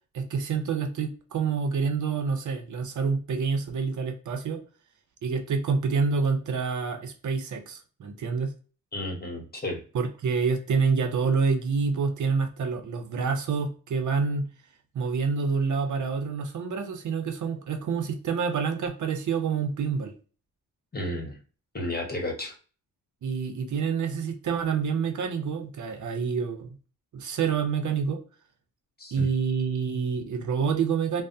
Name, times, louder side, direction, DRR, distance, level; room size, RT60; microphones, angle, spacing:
voice 1, 0.1-4.6 5.2-8.5 9.9-14.5 14.9-20.1 23.2-26.8 27.1-28.2 29.1-31.2, right 5 dB, 60° right, 6 dB, 0.6 m, -27 dB
voice 2, 8.9-9.8 20.9-21.4 21.7-22.5 29.0-29.2, left 1 dB, 30° left, 2 dB, 1.0 m, -32 dB
3.3 x 2.0 x 2.6 m, 0.37 s
cardioid pair, 85°, 34 cm